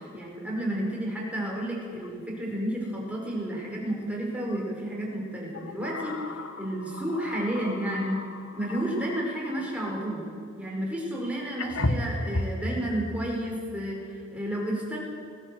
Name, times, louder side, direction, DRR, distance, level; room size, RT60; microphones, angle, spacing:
voice 1, 0.0-8.2 8.5-10.2 10.6-15.0, right 1 dB, 5° right, -3 dB, 5.4 m, -31 dB
sound 1, 2.0-2.1 2.5-2.7 4.5-4.7 5.5-9.8 11.0-11.1 11.6-12.7, left 2 dB, 70° left, 1.4 m, -34 dB
20.5 x 16.5 x 8.0 m, 2.4 s
head